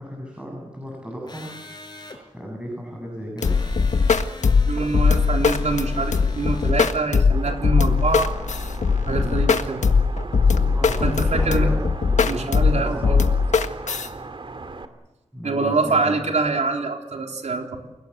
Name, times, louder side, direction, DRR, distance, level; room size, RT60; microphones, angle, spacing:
voice 1, 0.0-1.5 2.3-3.5 9.1-9.3 10.4-13.2 15.3-16.2, equal, 10° right, -1 dB, 7.7 m, -35 dB
sound 1, 1.3-2.2 3.4-6.7, left 2 dB, 35° left, 5.8 m, -42 dB
sound 2, 3.4-14.1, left 5 dB, 90° left, 1.6 m, -20 dB
voice 2, 4.6-8.3 9.1-9.8 11.0-11.7 12.2-13.2 15.4-17.8, right 3 dB, 75° right, 2 dB, 3.9 m, -25 dB
suburban wind, 7.3-14.8, right 3 dB, 45° right, 2.3 m, -38 dB
29.5 x 17.5 x 8.2 m, 1.1 s
wide cardioid pair, 105°, 12 cm